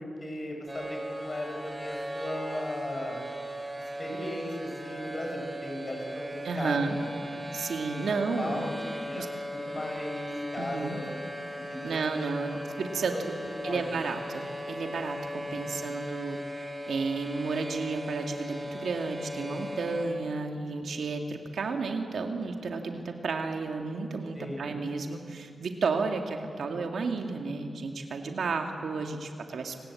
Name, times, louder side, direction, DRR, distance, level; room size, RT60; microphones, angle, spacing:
voice 1, 0.0-3.2 3.8-7.1 8.1-11.0 11.5-12.6 13.1-13.8 15.4-15.8 19.3-19.6 24.3-24.7, left 1 dB, 35° left, 1 dB, 6.5 m, -37 dB
sound 1, 0.7-20.1, equal, 20° right, 4.5 m, -38 dB
voice 2, 6.4-7.0 7.5-8.6 9.2-9.3 10.6-11.0 11.8-13.3 13.6-29.8, right 4 dB, 85° right, 4 dB, 2.2 m, -32 dB
28.5 x 19.5 x 8.5 m, 2.4 s
wide cardioid pair, 80°, 0 cm